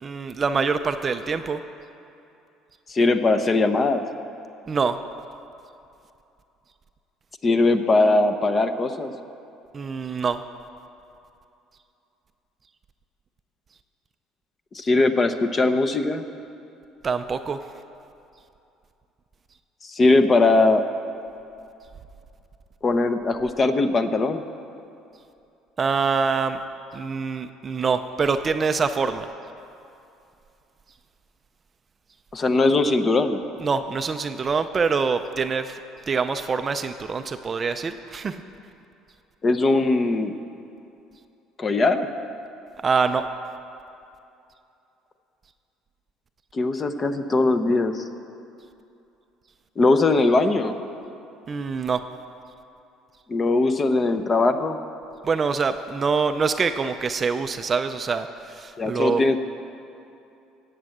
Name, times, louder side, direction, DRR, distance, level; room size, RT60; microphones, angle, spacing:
voice 1, 0.0-1.6 4.7-5.0 9.7-10.4 17.0-17.6 25.8-26.6 26.9-29.3 33.6-35.8 36.1-38.4 42.8-43.2 51.5-52.0 55.2-59.2, right 5 dB, 25° right, 8 dB, 0.5 m, -25 dB
voice 2, 2.9-4.0 7.4-9.1 14.7-16.2 19.8-20.8 22.8-24.4 32.3-33.4 39.4-40.3 41.6-42.1 46.5-48.0 49.8-50.7 53.3-54.8 58.8-59.4, left 3 dB, 25° left, 9 dB, 0.7 m, -20 dB
15.5 x 8.8 x 7.8 m, 2.7 s
cardioid pair, 155°, 0 cm